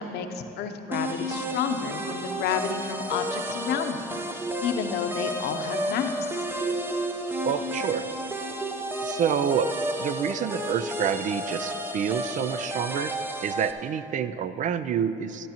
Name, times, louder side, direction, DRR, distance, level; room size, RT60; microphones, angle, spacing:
voice 1, 0.0-6.4, left 7 dB, 75° left, 7 dB, 0.7 m, -30 dB
sound 1, 0.9-13.7, right 1 dB, 10° right, 0.7 m, -32 dB
voice 2, 7.4-8.1 9.0-9.7 10.0-13.1 13.4-15.5, right 8 dB, 50° right, 13 dB, 0.4 m, -28 dB
12.0 x 12.0 x 2.9 m, 3.0 s
cardioid pair, 110°, 17 cm